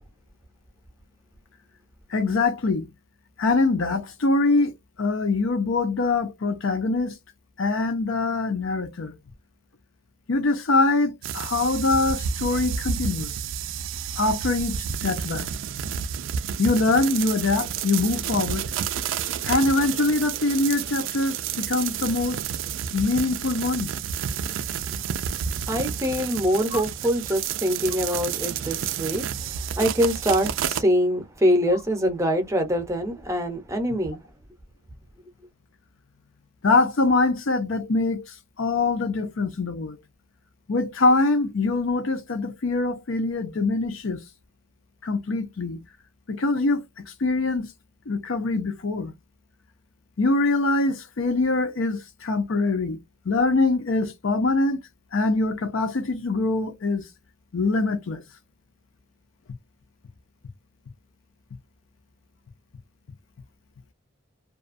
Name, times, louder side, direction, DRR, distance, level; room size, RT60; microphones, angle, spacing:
voice 1, 2.1-2.9 3.4-4.7 5.0-7.2 7.6-9.2 10.3-13.3 14.2-15.5 16.6-18.7 19.4-22.4 22.9-23.9 26.7-26.8 36.6-38.2 38.6-40.0 40.7-44.2 45.0-45.8 46.3-47.7 48.1-49.1 50.2-53.0 53.3-54.8 55.1-57.0 57.5-58.2, left 3 dB, 70° left, 0.6 m, -23 dB
sound 1, 11.2-30.8, right 8 dB, 60° right, 0.3 m, -30 dB
voice 2, 25.7-34.2, equal, 15° right, 0.6 m, -24 dB
2.4 x 2.2 x 2.5 m
head